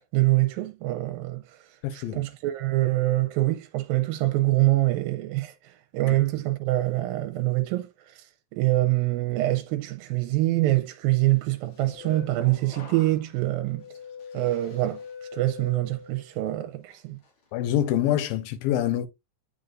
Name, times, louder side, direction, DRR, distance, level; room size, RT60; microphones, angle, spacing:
voice 1, 0.1-1.6 1.9-8.2 8.5-13.8 14.3-15.0 15.3-17.2, right 17 dB, 90° right, 2.4 m, -25 dB
voice 2, 1.8-2.2 17.5-19.1, left 11 dB, 85° left, 2.7 m, -25 dB
sound 1, 11.4-16.5 16.9-17.3, left 6 dB, 40° left, 2.4 m, -44 dB
8.2 x 5.5 x 2.5 m
omnidirectional pair, 4.1 m